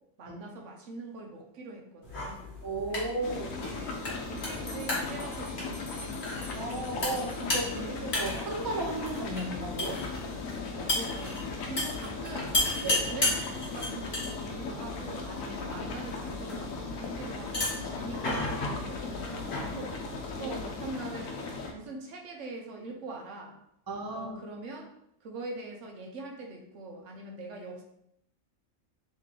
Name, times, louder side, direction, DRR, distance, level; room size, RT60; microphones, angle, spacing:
voice 1, 0.2-2.4 2.9-3.4 3.7-6.1 10.9-11.4 11.7-12.6 12.8-19.2 19.6-20.0 20.4-21.4 21.7-23.6 24.1-24.9 25.2-27.8, right 2 dB, 70° right, 1 dB, 1.0 m, -43 dB
sound 1, 2.0-20.9, left 2 dB, 50° left, 1.4 m, -35 dB
voice 2, 2.6-3.5 6.5-10.0 12.8-12.9 20.3-20.6 23.9-24.3, right 2 dB, 25° right, -1 dB, 0.5 m, -34 dB
sound 2, 3.2-21.7, left 3 dB, 85° left, 1.1 m, -38 dB
Bell, 4.4-8.0, left 1 dB, 30° left, 0.7 m, -49 dB
3.6 x 3.2 x 3.2 m, 0.76 s
omnidirectional pair, 1.3 m